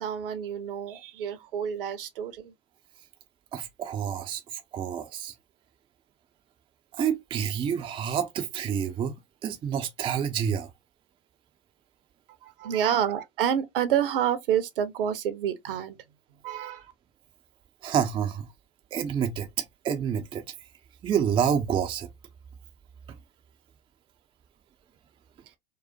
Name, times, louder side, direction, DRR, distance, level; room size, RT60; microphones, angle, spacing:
voice 1, 0.0-2.5 12.4-16.0 16.4-16.9, right 9 dB, 60° right, 0.9 m, -28 dB
voice 2, 3.5-5.3 6.9-9.1 9.4-10.7 17.8-18.5 18.9-20.4 21.0-22.1, right 8 dB, 15° right, 0.5 m, -28 dB
5.0 x 2.0 x 2.6 m
figure-of-eight pair, 95°, 30 cm